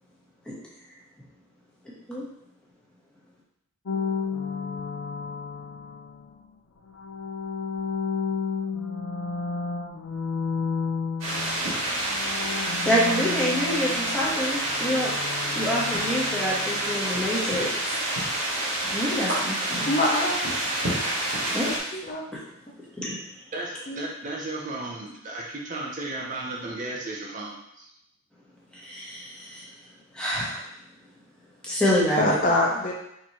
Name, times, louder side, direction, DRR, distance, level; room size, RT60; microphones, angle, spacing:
sound 1, 3.9-6.3 6.9-11.8 12.0-17.0, left 5 dB, 80° left, 0.5 m, -32 dB
sound 2, 11.2-21.8, right 1 dB, 75° right, 1.7 m, -28 dB
voice 1, 12.8-15.1 15.5-17.7 18.9-19.9 21.5-21.7 23.0-23.2 28.7-29.7 30.1-30.6 31.7-32.4, equal, 5° left, -7 dB, 1.1 m, -26 dB
voice 2, 19.9-20.4 21.5-21.6 21.9-22.2 23.9-24.1 32.1-32.9, left 1 dB, 35° left, -1 dB, 0.6 m, -24 dB
voice 3, 23.5-27.9, right 2 dB, 35° right, -2 dB, 0.7 m, -34 dB
4.3 x 3.8 x 3.0 m, 0.79 s
head